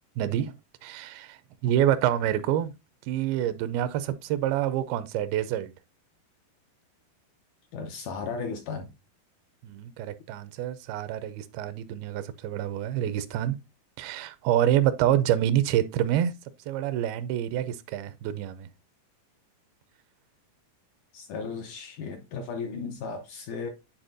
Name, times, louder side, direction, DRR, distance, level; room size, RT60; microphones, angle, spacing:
voice 1, 0.2-0.6 0.8-2.7 3.1-5.7 9.6-13.6 14.0-16.3 16.7-18.7, right 11 dB, 85° right, 2.5 m, -27 dB
voice 2, 7.7-8.9 21.1-23.7, left 5 dB, 80° left, 1.8 m, -35 dB
10.5 x 4.2 x 2.5 m
omnidirectional pair, 4.3 m